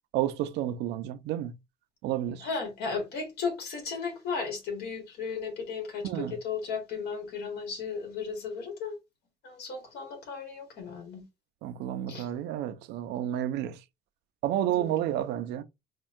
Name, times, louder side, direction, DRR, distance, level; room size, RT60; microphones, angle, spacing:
voice 1, 0.1-1.6 2.0-2.5 6.0-6.4 11.6-13.8 14.4-15.6, right 12 dB, 85° right, 0.5 m, -30 dB
voice 2, 2.4-9.0 9.4-11.2 12.1-12.3 14.7-15.2, left 5 dB, 75° left, 1.6 m, -35 dB
4.4 x 2.3 x 2.6 m
cardioid pair, 110°, 17 cm